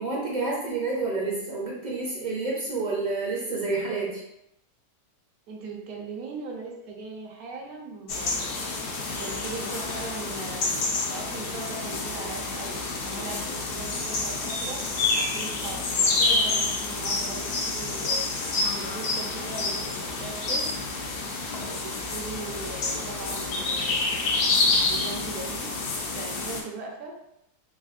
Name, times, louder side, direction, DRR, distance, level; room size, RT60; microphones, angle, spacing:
voice 1, 0.0-4.2, right 3 dB, 45° right, -5 dB, 0.5 m, -29 dB
voice 2, 5.5-8.5 9.2-14.9 15.2-18.2 18.7-20.7 21.7-24.5 24.9-25.7 26.1-27.2, right 4 dB, 65° right, 0 dB, 1.1 m, -39 dB
sound 1, 8.1-26.6, left 3 dB, 70° left, 1.2 m, -28 dB
3.4 x 3.3 x 2.4 m, 0.80 s
omnidirectional pair, 1.8 m